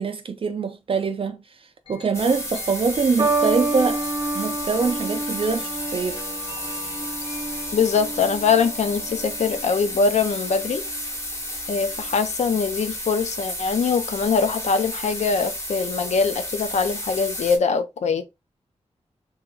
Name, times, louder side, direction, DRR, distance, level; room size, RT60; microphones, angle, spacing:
voice 1, 0.0-1.4 1.9-4.0 4.3-6.2, right 4 dB, 50° right, 0.4 m, -24 dB
sound 1, 1.8-9.6, left 1 dB, 45° left, 1.2 m, -45 dB
sound 2, 2.1-17.6, equal, 25° left, 1.2 m, -32 dB
sound 3, 3.2-9.7 10.6-11.0, right 3 dB, 25° right, 0.8 m, -29 dB
voice 2, 7.7-10.8 11.7-18.2, left 5 dB, 75° left, 0.4 m, -22 dB
2.9 x 2.3 x 3.7 m
wide cardioid pair, 95°, 12 cm